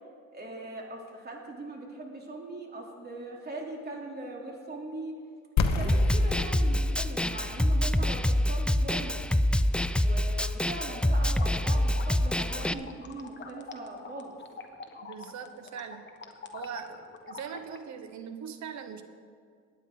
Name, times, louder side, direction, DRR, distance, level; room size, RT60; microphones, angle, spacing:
voice 1, 0.3-5.1 5.7-9.2 10.0-14.3, right 2 dB, 35° right, -1 dB, 3.0 m, -40 dB
sound 1, 5.6-11.3, left 4 dB, 65° left, 1.2 m, -33 dB
Snare drum, 5.9-12.7, left 1 dB, 5° left, 0.4 m, -26 dB
sound 2, 10.8-17.8, left 5 dB, 40° left, 1.3 m, -46 dB
voice 2, 15.0-16.0 16.5-19.0, right 7 dB, 65° right, 9 dB, 1.1 m, -41 dB
22.5 x 9.2 x 3.8 m, 2.1 s
cardioid pair, 90°, 30 cm